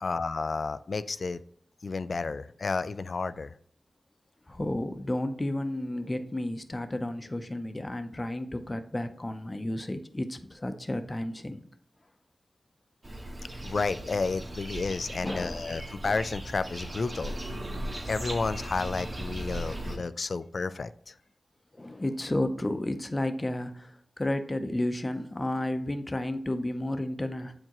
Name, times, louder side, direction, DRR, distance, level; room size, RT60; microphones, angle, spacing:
voice 1, 0.0-1.4 1.8-3.5 13.6-17.3 18.1-21.1, left 4 dB, 65° left, 14 dB, 0.3 m, -31 dB
voice 2, 4.5-11.6 15.2-15.8 17.1-17.3 19.7-19.8 21.7-27.5, left 1 dB, 30° left, 8 dB, 0.6 m, -32 dB
sound 1, 13.0-20.0, right 1 dB, 50° right, 1.8 m, -37 dB
7.5 x 4.6 x 3.0 m, 0.65 s
cardioid pair, 55°, 0 cm